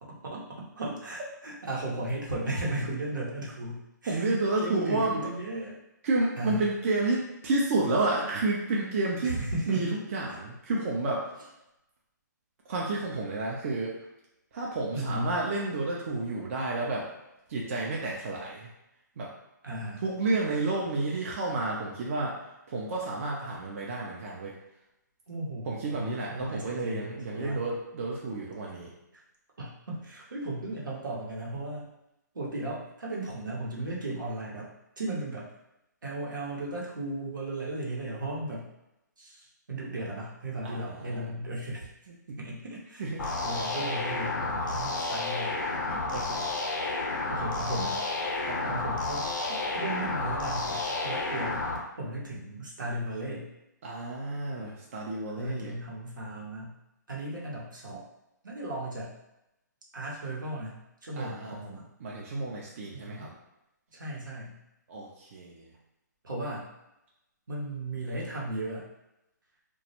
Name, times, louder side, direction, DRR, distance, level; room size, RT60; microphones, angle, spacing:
voice 1, 0.0-5.7 6.4-6.6 9.2-9.8 14.9-15.3 19.6-20.0 25.3-27.6 29.1-29.2 29.6-31.9 32.3-35.5 36.0-38.7 39.2-41.9 42.4-45.6 47.3-51.7 52.0-53.5 55.3-56.8 57.1-58.1 58.4-59.1 59.9-61.9 62.9-63.3 63.9-64.6 66.2-66.7 67.5-68.9, right 1 dB, 85° right, -4 dB, 0.8 m, -36 dB
voice 2, 4.1-5.3 6.0-9.4 9.7-11.3 12.7-14.0 14.5-17.1 17.5-18.7 19.2-19.3 20.0-22.4 22.7-24.5 25.7-28.9 40.6-41.3 42.3-42.4 43.0-43.3 45.9-46.4 48.5-48.7 53.8-55.8 61.2-61.6 62.0-63.3 64.9-65.7, right 2 dB, 45° right, -3 dB, 0.5 m, -30 dB
sound 1, 43.2-51.8, left 3 dB, 80° left, 0.7 m, -31 dB
2.2 x 2.0 x 2.8 m, 0.89 s
hypercardioid pair, 145°, 10 cm